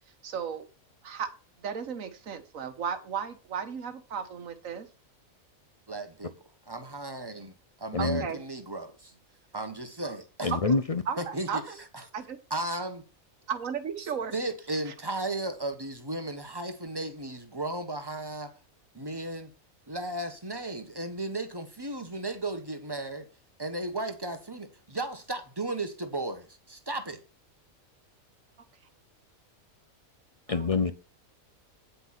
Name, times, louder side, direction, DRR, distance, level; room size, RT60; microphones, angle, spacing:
voice 1, 0.2-0.7 1.0-1.3 1.6-4.9 8.0-8.4 10.5-10.6 11.0-11.8 12.1-12.4 13.5-14.3 14.8-14.9 30.5-30.9, right 7 dB, 70° right, 1.6 m, -35 dB
voice 2, 5.9-6.3 6.7-9.1 9.5-10.5 11.2-11.6 11.9-12.0 12.5-13.0 14.3-18.5 18.9-19.5 19.9-23.3 23.6-27.2, right 2 dB, 20° right, 1.2 m, -35 dB
voice 3, 7.9-8.3 10.4-11.0 30.5-30.9, left 4 dB, 50° left, 0.4 m, -26 dB
9.5 x 6.0 x 5.9 m
omnidirectional pair, 1.5 m